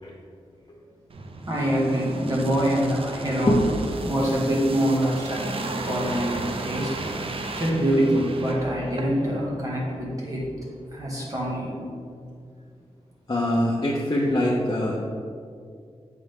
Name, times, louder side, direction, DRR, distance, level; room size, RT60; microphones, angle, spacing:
sound 1, 1.1-9.4 9.8-9.9, right 2 dB, 55° right, 0.6 m, -35 dB
voice 1, 1.5-3.6 4.0-5.5 5.9-6.9 7.6-10.4 10.9-11.8, right 1 dB, 30° right, -5 dB, 1.9 m, -25 dB
voice 2, 13.3-15.0, left 1 dB, 35° left, -5 dB, 0.9 m, -23 dB
7.6 x 6.0 x 3.6 m, 2.2 s
wide cardioid pair, 130°, 11 cm